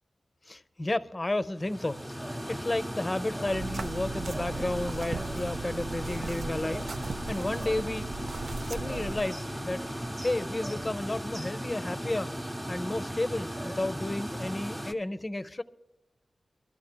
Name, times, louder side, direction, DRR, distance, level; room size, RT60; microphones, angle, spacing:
voice 1, 0.5-8.1 8.6-9.9 10.2-12.3 12.7-15.6, left 2 dB, 35° left, 0.5 m, -32 dB
sound 1, 1.6-14.9, equal, 20° right, 0.8 m, -36 dB
sound 2, 3.4-9.3, right 4 dB, 75° right, 0.3 m, -39 dB
sound 3, 6.0-11.0, right 2 dB, 50° right, 0.8 m, -52 dB
25.5 x 13.0 x 2.2 m
cardioid pair, 60°, 0 cm